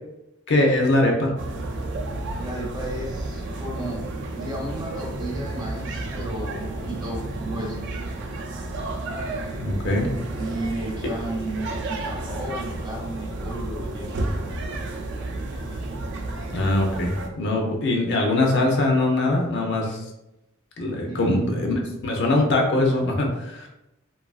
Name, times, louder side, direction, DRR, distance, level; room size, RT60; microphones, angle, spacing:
voice 1, 0.5-1.3 9.6-10.1 16.5-20.0 20.8-21.7 22.0-23.7, left 2 dB, 60° left, 1 dB, 0.5 m, -22 dB
sound 1, 1.4-17.3, right 2 dB, 60° right, 0.4 m, -31 dB
voice 2, 2.4-4.1 4.4-7.8 10.4-14.2 21.1-21.7, right 1 dB, 20° right, -2 dB, 0.6 m, -33 dB
2.7 x 2.4 x 2.3 m, 0.91 s
head